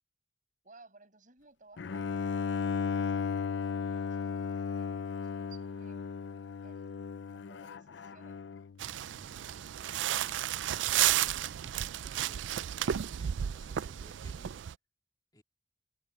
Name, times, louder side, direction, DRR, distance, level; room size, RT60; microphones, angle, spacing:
voice 1, 0.6-6.1 6.6-8.4, right 3 dB, 45° right, 6.3 m, -60 dB
Bowed string instrument, 1.8-8.8, left 5 dB, 80° left, 0.5 m, -35 dB
sound 1, 8.8-14.7, right 11 dB, 90° right, 0.4 m, -32 dB
voice 2, 10.1-14.6 15.3-15.4, left 1 dB, 20° left, 2.2 m, -59 dB
head